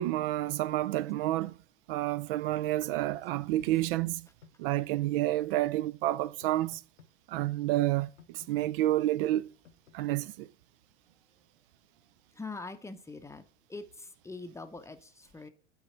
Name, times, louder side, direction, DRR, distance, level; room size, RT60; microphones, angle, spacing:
voice 1, 0.0-1.6 1.9-4.3 4.6-6.8 7.3-9.5 9.9-10.5, right 15 dB, 55° right, 0.4 m, -29 dB
sound 1, 3.7-4.5 6.4-7.1 8.2-8.8 9.7-10.3, left 7 dB, 80° left, 0.9 m, -56 dB
voice 2, 12.3-13.4 13.7-15.5, left 3 dB, 10° left, 0.7 m, -43 dB
8.0 x 4.9 x 4.3 m
hypercardioid pair, 90°, 34 cm